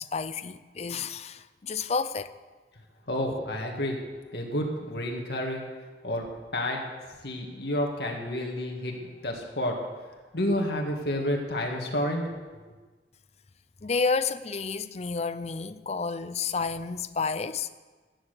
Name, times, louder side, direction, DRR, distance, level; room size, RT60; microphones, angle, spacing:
voice 1, 0.0-2.3 13.8-17.7, left 4 dB, 40° left, 0.5 m, -30 dB
voice 2, 3.1-4.0 4.3-5.6 6.0-6.3 6.5-6.8 7.2-9.7 10.3-12.3, left 1 dB, 65° left, 2.1 m, -30 dB
14.0 x 10.0 x 6.7 m
head